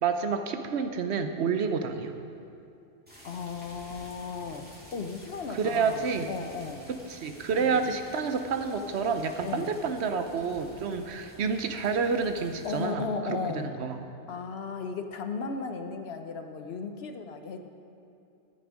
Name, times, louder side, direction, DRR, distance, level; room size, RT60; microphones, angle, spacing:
voice 1, 0.0-2.2 5.5-6.3 6.9-14.0, right 5 dB, 70° right, 8 dB, 1.0 m, -29 dB
sound 1, 3.1-12.8, equal, 10° right, 2.6 m, -50 dB
voice 2, 3.2-4.6 4.9-6.8 7.5-7.9 9.4-9.7 12.6-13.8 14.3-17.6, left 5 dB, 65° left, 7 dB, 1.0 m, -35 dB
13.5 x 8.8 x 5.1 m, 2.6 s
omnidirectional pair, 1.2 m